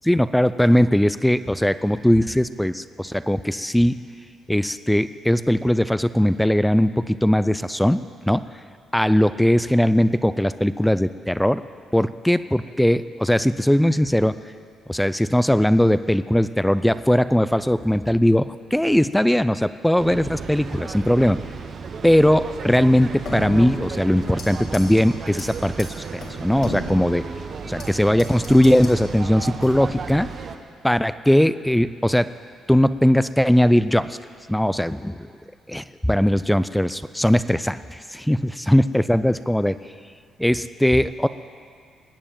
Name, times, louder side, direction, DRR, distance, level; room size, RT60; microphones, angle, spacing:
voice 1, 0.0-4.0 4.5-8.0 8.3-8.4 8.9-11.6 11.9-14.4 14.9-21.4 22.0-27.2 27.6-30.3 30.8-32.3 32.7-34.2 34.5-35.2 35.7-38.4 38.7-39.8 40.4-41.3, equal, 5° left, 14 dB, 0.4 m, -19 dB
sound 1, 20.0-30.6, right 5 dB, 55° right, 1.1 m, -34 dB
sound 2, 23.2-24.5 24.7-25.0 25.4-25.5 25.8-25.9 26.2-27.9 28.2-29.0 29.6-30.0, left 1 dB, 65° left, 3.5 m, -34 dB
19.5 x 6.9 x 8.9 m, 2.1 s
cardioid pair, 90°, 0 cm